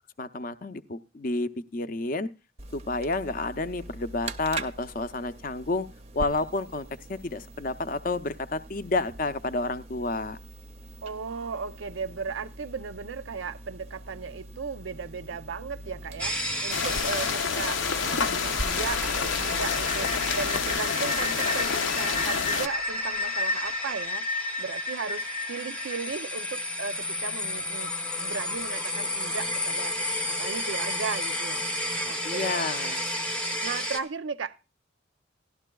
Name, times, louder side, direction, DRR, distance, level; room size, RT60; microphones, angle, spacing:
voice 1, 0.2-2.3 2.7-5.9 6.1-10.4 32.2-33.1, left 3 dB, 45° left, 0.5 m, -30 dB
sound 1, 2.6-20.8, right 2 dB, 35° right, 0.5 m, -42 dB
voice 2, 11.0-32.7 33.6-34.6, right 5 dB, 90° right, 0.6 m, -36 dB
sound 2, 16.2-34.0, left 1 dB, 5° left, 0.7 m, -31 dB
sound 3, 16.7-22.7, left 6 dB, 85° left, 0.7 m, -28 dB
17.5 x 12.0 x 2.3 m
head